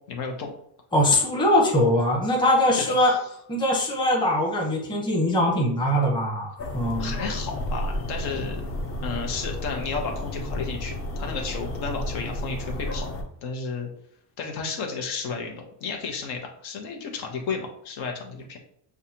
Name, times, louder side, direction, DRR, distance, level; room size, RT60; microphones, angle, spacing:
voice 1, 0.1-0.5 2.7-3.2 7.0-8.6 9.0-10.9 11.2-13.1 13.4-13.9 14.4-18.6, left 4 dB, 75° left, 2 dB, 1.1 m, -32 dB
voice 2, 0.9-3.2 3.5-7.2, left 1 dB, 10° left, -2 dB, 0.9 m, -22 dB
sound 1, 6.6-13.2, left 1 dB, 35° left, 0.7 m, -32 dB
6.5 x 2.4 x 2.9 m, 0.68 s
cardioid pair, 155°, 40 cm